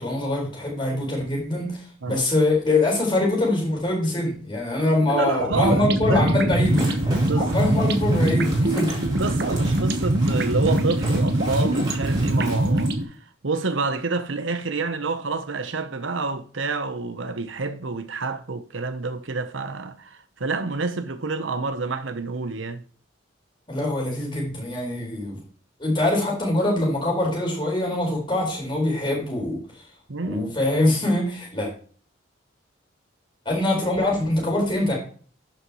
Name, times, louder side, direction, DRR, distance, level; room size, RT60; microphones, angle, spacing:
voice 1, 0.0-6.9 7.4-8.9 23.7-25.4 25.8-29.6 30.2-31.7 33.4-34.9, left 2 dB, 25° left, 4.5 m, -23 dB
voice 2, 5.0-6.2 7.2-7.7 9.2-13.2 13.4-22.8 30.1-30.5, right 3 dB, 85° right, 0.9 m, -28 dB
sound 1, 5.4-13.0, right 1 dB, 55° right, 1.1 m, -22 dB
sound 2, 6.5-12.9, right 1 dB, 20° right, 3.2 m, -36 dB
11.0 x 6.8 x 3.1 m
head